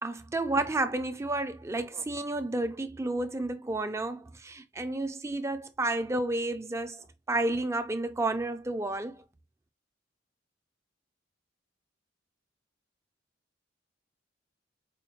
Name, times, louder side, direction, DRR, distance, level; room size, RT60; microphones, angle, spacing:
voice 1, 0.0-9.2, right 2 dB, 15° right, 0.4 m, -31 dB
4.9 x 2.1 x 3.0 m
head